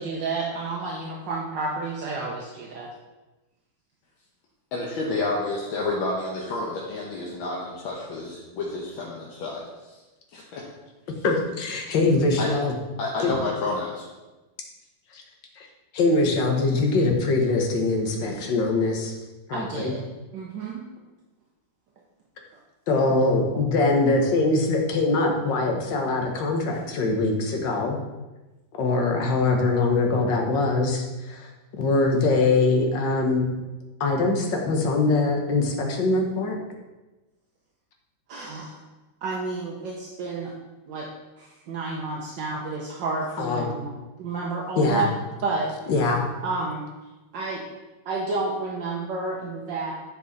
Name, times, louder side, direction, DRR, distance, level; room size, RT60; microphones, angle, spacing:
voice 1, 0.0-2.9 19.5-20.0 20.3-20.8 23.0-23.2 38.3-38.8 39.2-40.5 40.9-41.1 41.4-43.9 44.2-45.1 45.4-45.7 46.4-46.8 47.3-47.6 48.0-49.9, right 3 dB, 70° right, -2 dB, 1.6 m, -30 dB
voice 2, 4.7-9.6 10.3-10.7 12.4-12.5 13.0-14.0, left 2 dB, 85° left, -3 dB, 1.8 m, -29 dB
voice 3, 11.2-12.7 13.2-13.4 15.1-15.2 15.6-15.7 15.9-19.1 19.5-19.9 22.9-28.0 28.8-33.5 34.0-36.6 43.4-43.7 44.7-45.1 45.9-46.2, left 3 dB, 70° left, 2 dB, 1.8 m, -23 dB
9.8 x 4.7 x 4.1 m, 1.1 s
omnidirectional pair, 2.1 m